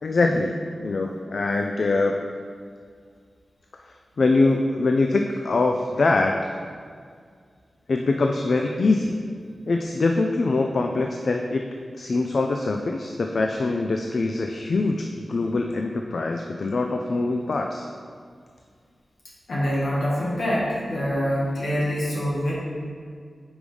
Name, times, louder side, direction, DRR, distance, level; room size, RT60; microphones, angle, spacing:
voice 1, 0.0-2.2 4.2-6.3 7.9-9.2 9.7-11.6 11.9-17.9, left 3 dB, 60° left, 3 dB, 0.4 m, -23 dB
voice 2, 19.5-22.5, equal, 80° left, -7 dB, 1.8 m, -25 dB
5.1 x 4.8 x 5.3 m, 2.1 s
wide cardioid pair, 135°, 0 cm